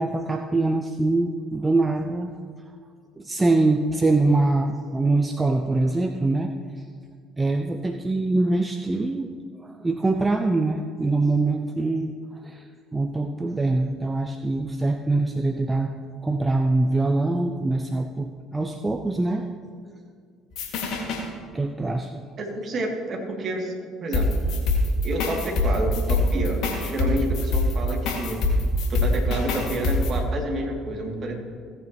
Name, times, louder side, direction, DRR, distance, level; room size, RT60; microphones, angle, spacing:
voice 1, 0.0-2.3 3.2-6.8 7.4-9.3 9.6-15.9 16.2-19.5 21.5-22.2, right 2 dB, 15° right, 6 dB, 0.6 m, -24 dB
sound 1, 20.5-21.2 24.1-30.1, left 2 dB, 65° left, 2.0 m, -24 dB
voice 2, 22.4-23.7 24.0-24.3 25.0-28.4 28.9-31.3, right 1 dB, 45° right, 0 dB, 2.5 m, -29 dB
17.0 x 8.7 x 3.0 m, 2.1 s
hypercardioid pair, 60°, 0 cm